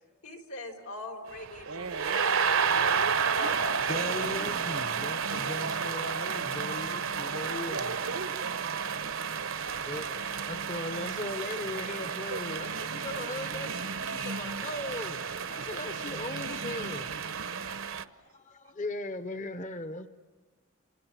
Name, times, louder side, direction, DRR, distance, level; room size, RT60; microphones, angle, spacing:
voice 1, 0.2-1.8 2.1-2.9 3.4-3.9, left 1 dB, 85° left, 4.4 m, -41 dB
sound 1, 1.3-18.0, right 6 dB, 65° right, 0.9 m, -31 dB
voice 2, 1.6-3.5 4.5-5.0 7.6-9.1 12.3-12.4 13.0-13.5 17.7-18.4 18.6-18.7, right 3 dB, 90° right, 1.1 m, -42 dB
voice 3, 3.9-8.0 9.8-15.2 15.5-17.1 18.3-20.1, left 2 dB, 35° left, 0.8 m, -38 dB
29.0 x 27.0 x 7.5 m
head